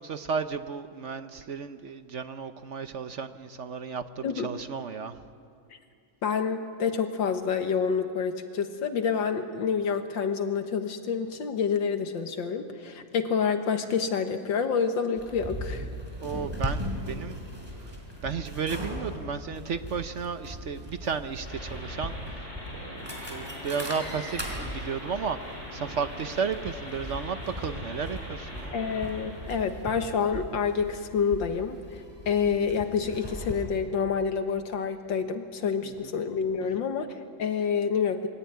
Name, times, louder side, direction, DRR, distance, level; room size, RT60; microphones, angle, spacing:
voice 1, 0.0-5.1 16.2-17.4 17.8-17.9 18.2-22.5 22.7-28.7 35.8-36.1 36.7-36.8, right 6 dB, 55° right, 10 dB, 0.9 m, -34 dB
voice 2, 6.2-15.9 28.7-38.3, left 6 dB, 75° left, 7 dB, 2.1 m, -28 dB
sound 1, 15.2-33.5, equal, 10° right, 4.6 m, -39 dB
sound 2, 21.4-29.7, left 1 dB, 55° left, 7.8 m, -42 dB
27.0 x 21.5 x 9.4 m, 2.4 s
omnidirectional pair, 2.1 m